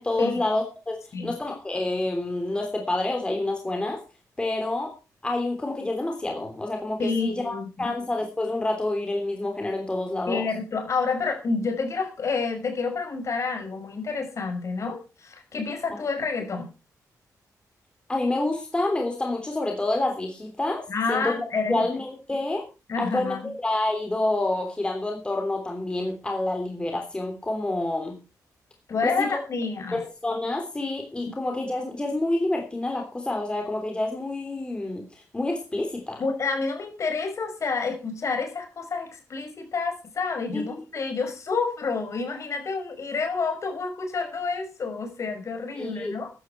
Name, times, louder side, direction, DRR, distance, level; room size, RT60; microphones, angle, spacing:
voice 1, 0.0-1.0 1.2-4.0 4.4-4.9 5.2-10.4 18.1-20.8 21.1-21.3 21.7-22.6 23.0-23.4 23.6-28.2 29.0-29.4 29.9-35.0 35.3-36.2 40.5-40.6 45.8-46.2, left 2 dB, 15° left, 2 dB, 3.2 m, -28 dB
voice 2, 7.0-7.9 10.3-16.7 20.9-21.8 22.9-23.5 28.9-30.0 31.3-31.4 36.2-46.3, left 4 dB, 50° left, 5 dB, 5.5 m, -29 dB
14.0 x 11.5 x 4.6 m, 0.32 s
wide cardioid pair, 140°, 7 cm